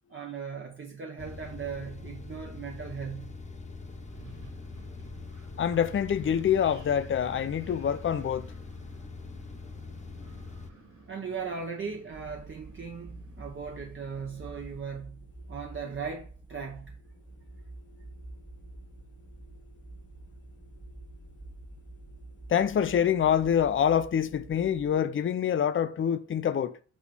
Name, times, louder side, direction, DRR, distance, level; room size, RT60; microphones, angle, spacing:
voice 1, 0.1-3.4 11.1-17.0, right 6 dB, 40° right, 1.0 m, -38 dB
sound 1, 1.2-10.7, left 4 dB, 25° left, 1.0 m, -43 dB
Wind, 3.8-14.8, right 3 dB, 85° right, 3.1 m, -53 dB
voice 2, 5.6-8.4 22.5-26.8, left 8 dB, 40° left, 0.5 m, -26 dB
sound 2, 12.1-24.9, right 2 dB, 15° right, 0.9 m, -48 dB
8.3 x 3.2 x 5.4 m
wide cardioid pair, 135°, 31 cm